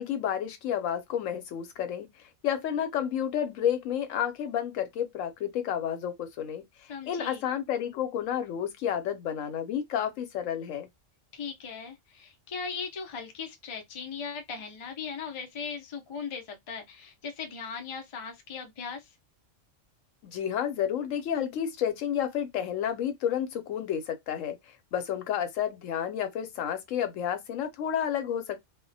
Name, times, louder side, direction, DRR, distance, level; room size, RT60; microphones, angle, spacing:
voice 1, 0.0-2.1 2.4-10.9 20.2-24.6 24.9-28.6, left 9 dB, 85° left, 1.0 m, -31 dB
voice 2, 6.9-7.4 11.3-19.1, left 5 dB, 45° left, 0.4 m, -38 dB
2.3 x 2.1 x 2.6 m
omnidirectional pair, 1.3 m